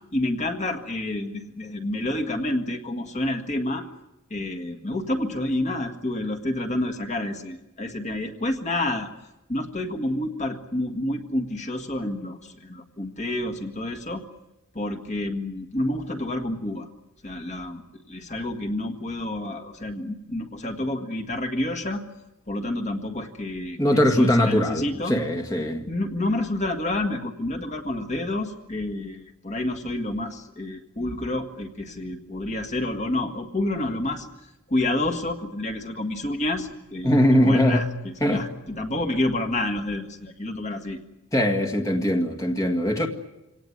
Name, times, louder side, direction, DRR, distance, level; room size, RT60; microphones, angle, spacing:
voice 1, 0.1-3.8 4.3-9.1 9.5-14.3 14.7-16.9 17.2-17.8 18.1-22.0 22.5-25.2 25.9-34.3 34.7-41.0, left 1 dB, 35° left, 4 dB, 1.7 m, -29 dB
voice 2, 23.8-25.9 37.0-37.8 38.2-38.4 41.3-43.1, equal, 15° left, 2 dB, 1.8 m, -21 dB
26.0 x 18.5 x 9.4 m, 0.99 s
head